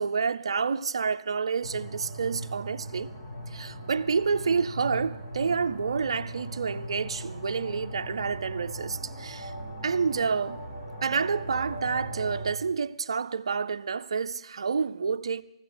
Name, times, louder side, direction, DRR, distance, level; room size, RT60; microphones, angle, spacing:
voice 1, 0.0-3.1 3.5-9.5 9.8-10.6 11.0-15.4, right 5 dB, 65° right, 0.5 m, -29 dB
sound 1, 1.6-12.6, right 1 dB, 40° left, 1.9 m, -39 dB
20.5 x 15.5 x 3.9 m
figure-of-eight pair, 145°, 3 cm